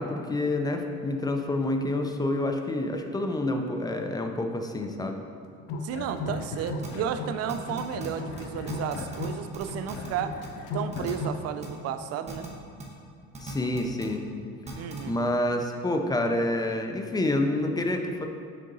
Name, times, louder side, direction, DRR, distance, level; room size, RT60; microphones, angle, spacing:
voice 1, 0.0-5.2 13.4-14.2 15.1-18.3, left 1 dB, 15° left, 4 dB, 0.4 m, -28 dB
sound 1, 5.6-7.4 7.7-11.4, left 3 dB, 85° left, 0.7 m, -35 dB
voice 2, 5.8-10.3 10.7-12.5 14.7-15.2, right 8 dB, 55° right, 9 dB, 0.4 m, -33 dB
sound 2, 6.8-6.9 7.5-8.1 8.4-8.5 8.7-9.3 9.5-10.1 10.4-10.5 10.9-11.1 11.6-11.7 12.3-12.5 12.8-12.9 13.3-14.0 14.7-15.0, right 3 dB, 20° right, 1.0 m, -38 dB
6.6 x 3.8 x 3.9 m, 2.2 s
cardioid pair, 130°, 30 cm